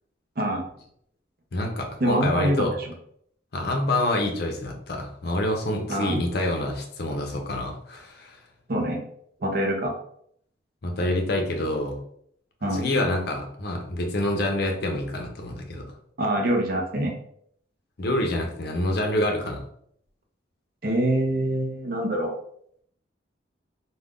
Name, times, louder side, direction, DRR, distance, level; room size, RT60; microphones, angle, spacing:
voice 1, 0.4-0.7 2.0-2.9 5.9-6.2 8.7-9.0 9.4-9.9 12.6-13.0 16.2-17.1 20.8-22.3, right 1 dB, 50° right, 1 dB, 0.6 m, -25 dB
voice 2, 1.5-2.7 3.5-8.4 10.8-12.0 12.7-15.8 18.0-19.6, left 1 dB, 55° left, 2 dB, 0.6 m, -27 dB
2.4 x 2.2 x 3.5 m, 0.67 s
head